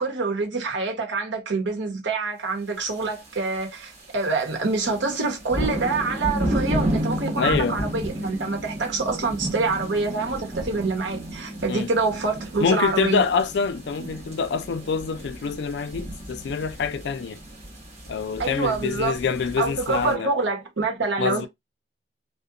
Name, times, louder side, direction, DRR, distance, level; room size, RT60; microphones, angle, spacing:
voice 1, 0.0-13.2 18.4-19.2 19.6-21.5, right 3 dB, 85° right, 0.9 m, -26 dB
sound 1, 3.0-3.3 3.8-4.0 4.4-20.1, right 1 dB, 35° right, 1.3 m, -32 dB
voice 2, 7.4-7.8 11.7-11.9 12.6-17.4 18.1-20.3 21.2-21.5, left 5 dB, 70° left, 0.4 m, -26 dB
2.8 x 2.1 x 2.5 m
head